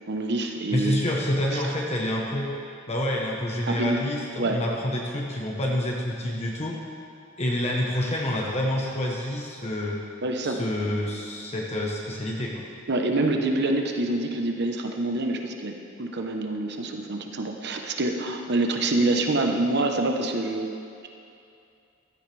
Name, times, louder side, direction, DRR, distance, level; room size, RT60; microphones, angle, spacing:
voice 1, 0.1-1.0 1.5-1.6 3.7-4.0 4.4-4.6 10.2-10.6 12.9-15.7 16.0-20.7, right 2 dB, 55° right, 3 dB, 1.1 m, -26 dB
voice 2, 0.7-2.5 2.9-6.8 7.4-10.0 10.4-12.6, left 1 dB, 35° left, -2 dB, 1.2 m, -28 dB
15.0 x 13.0 x 3.5 m, 2.6 s
head